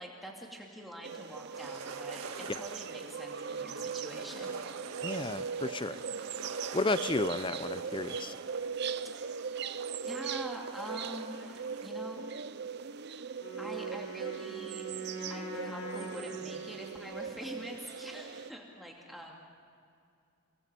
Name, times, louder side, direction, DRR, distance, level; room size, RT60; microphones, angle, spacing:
voice 1, 0.0-4.6 9.1-9.4 10.0-12.3 13.1-14.8 15.3-19.4, equal, ahead, -1 dB, 2.4 m, -45 dB
sound 1, 1.0-18.5, right 6 dB, 50° right, 0.6 m, -39 dB
sound 2, 1.5-11.9, right 5 dB, 85° right, 1.8 m, -47 dB
voice 2, 5.0-6.0 6.7-8.3, left 2 dB, 20° left, 14 dB, 0.5 m, -33 dB
Wind instrument woodwind instrument, 13.4-17.4, right 4 dB, 80° left, 6.5 m, -42 dB
29.5 x 19.0 x 7.5 m, 2.4 s
head